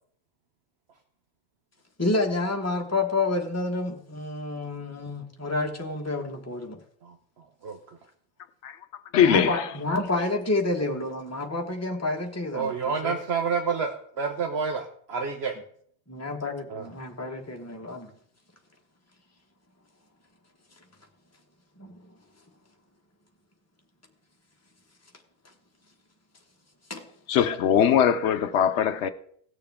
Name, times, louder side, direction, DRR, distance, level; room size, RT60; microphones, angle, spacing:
voice 1, 2.0-6.8 9.2-13.1 16.1-18.1 21.8-21.9 26.9-27.0, left 2 dB, 15° left, 1.3 m, -29 dB
voice 2, 9.1-9.7 27.3-29.1, left 8 dB, 80° left, 0.9 m, -21 dB
voice 3, 12.5-15.5 16.7-16.9, right 5 dB, 65° right, 1.1 m, -29 dB
17.5 x 6.7 x 3.6 m
omnidirectional pair, 1.2 m